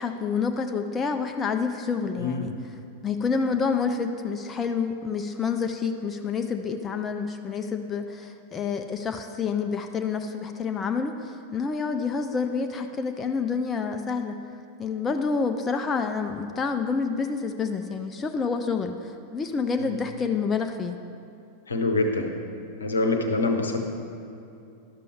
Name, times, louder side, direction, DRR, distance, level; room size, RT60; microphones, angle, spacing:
voice 1, 0.0-2.5 3.0-14.4 14.8-21.0, left 5 dB, 20° left, 6 dB, 0.4 m, -28 dB
voice 2, 2.2-2.5 19.8-20.0 21.7-22.3 22.8-23.8, left 3 dB, 75° left, 4 dB, 0.8 m, -25 dB
11.5 x 6.7 x 3.5 m, 2.6 s
figure-of-eight pair, 90°, 0 cm